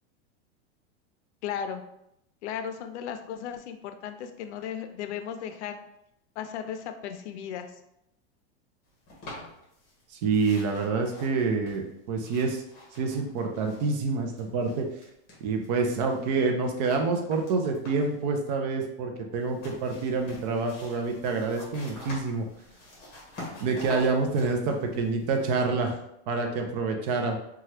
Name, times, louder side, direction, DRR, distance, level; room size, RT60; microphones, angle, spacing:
voice 1, 1.4-1.8 2.4-5.8 6.4-7.7, left 8 dB, 85° left, 7 dB, 0.5 m, -35 dB
sound 1, 9.1-10.0 10.3-14.0 14.3-15.7 16.0-18.2 19.4-25.7, left 1 dB, 30° left, 1.1 m, -46 dB
voice 2, 10.1-12.6 12.9-14.9 15.4-22.5 23.6-26.0 26.3-27.4, right 4 dB, 40° right, 3 dB, 0.4 m, -27 dB
2.8 x 2.3 x 3.2 m, 0.80 s
supercardioid pair, 160°, 33 cm